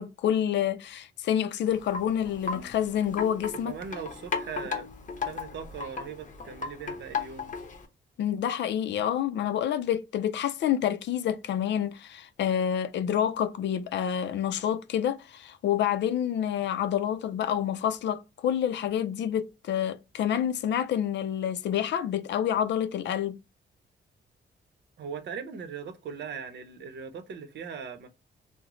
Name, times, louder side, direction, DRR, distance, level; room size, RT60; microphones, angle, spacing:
voice 1, 0.0-3.8 8.2-23.4, left 9 dB, 70° left, 0.4 m, -28 dB
Wind chime, 1.7-7.9, left 5 dB, 45° left, 0.8 m, -36 dB
voice 2, 3.7-4.9 5.2-7.5 25.0-28.1, right 6 dB, 65° right, 0.7 m, -39 dB
3.0 x 2.1 x 3.7 m
cardioid pair, 110°, 19 cm